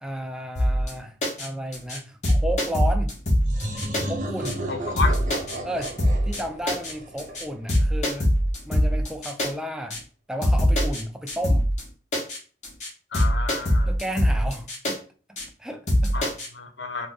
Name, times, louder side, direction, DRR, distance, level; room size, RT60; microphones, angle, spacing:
voice 1, 0.0-3.1 4.1-4.6 5.6-5.9 6.3-8.3 8.7-10.0 10.3-11.7 13.9-15.0 15.6-16.3, equal, 5° right, 0.3 m, -33 dB
sound 1, 0.6-0.9 1.2-1.5 1.7-2.0 2.2-4.0 4.4-4.5 5.0-5.6 5.8-6.4 6.7-6.9 7.2-7.4 7.7-9.5 9.9-10.0 10.4-11.0 11.3-11.8 12.1-12.4 12.6-12.9 13.1-14.9 15.4-15.5 15.9-16.5, equal, 45° left, 1.0 m, -22 dB
sound 2, 3.4-8.0, right 1 dB, 45° right, 0.7 m, -34 dB
voice 2, 4.7-5.1 13.1-13.9 16.1-17.1, left 4 dB, 85° left, 0.6 m, -31 dB
3.2 x 2.2 x 3.6 m
head